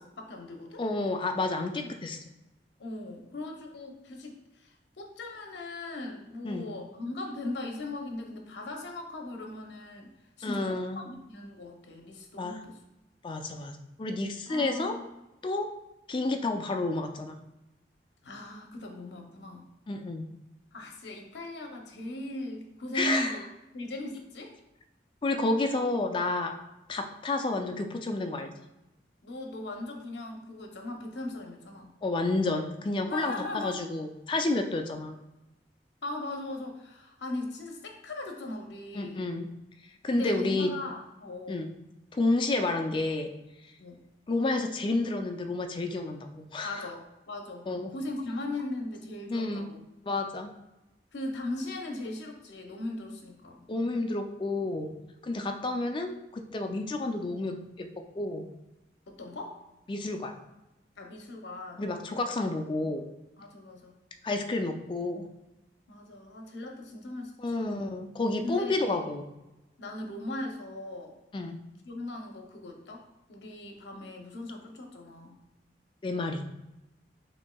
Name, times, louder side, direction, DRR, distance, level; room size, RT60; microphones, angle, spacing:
voice 1, 0.2-0.8 1.8-1.9 2.8-10.1 10.4-12.8 14.5-15.0 18.2-19.7 20.7-23.4 23.7-24.5 29.2-32.0 33.0-33.8 36.0-39.3 40.1-41.7 43.8-44.0 46.6-49.8 51.1-53.7 59.1-59.6 61.0-61.9 63.4-63.9 65.9-67.9 68.4-69.0 69.8-71.2 71.8-73.0 73.3-75.4, left 2 dB, 80° left, 2 dB, 0.7 m, -39 dB
voice 2, 0.8-2.2 6.4-6.7 10.4-11.0 12.4-12.6 13.2-14.9 15.4-15.7 16.1-17.4 19.9-20.3 22.9-23.4 25.2-26.5 26.9-28.5 32.0-35.2 38.9-39.5 40.0-40.7 41.5-41.7 42.1-43.3 44.3-46.9 47.7-47.9 49.3-49.7 50.0-50.5 53.7-54.9 55.2-57.9 58.1-58.5 59.9-60.3 61.8-63.1 64.2-65.3 67.4-69.3 71.3-71.6 76.0-76.4, left 2 dB, 30° left, 6 dB, 0.3 m, -30 dB
6.1 x 2.6 x 2.2 m, 0.97 s
head